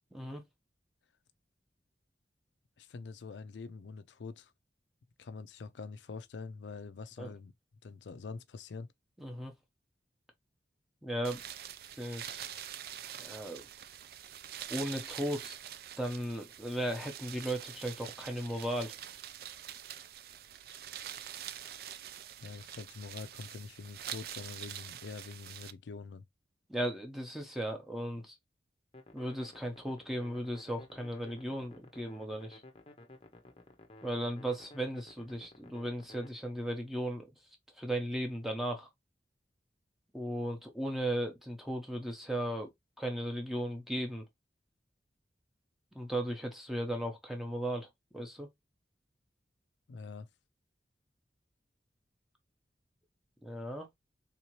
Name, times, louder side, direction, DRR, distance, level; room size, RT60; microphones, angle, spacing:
voice 1, 2.8-4.5 5.2-7.5 7.8-8.9 22.4-26.2 49.9-50.3, left 4 dB, 80° left, 0.4 m, -45 dB
voice 2, 9.2-9.5 11.0-11.4 12.0-12.6 13.2-13.7 14.7-15.6 16.0-19.0 26.7-28.4 29.1-32.6 34.0-37.3 37.8-38.9 40.1-42.7 43.0-44.3 45.9-47.9 48.1-48.5 53.4-53.9, right 1 dB, ahead, 0.8 m, -36 dB
sound 1, 11.2-25.7, right 10 dB, 55° right, 0.3 m, -45 dB
sound 2, 28.9-36.3, left 2 dB, 30° left, 0.7 m, -55 dB
3.7 x 2.8 x 3.0 m
head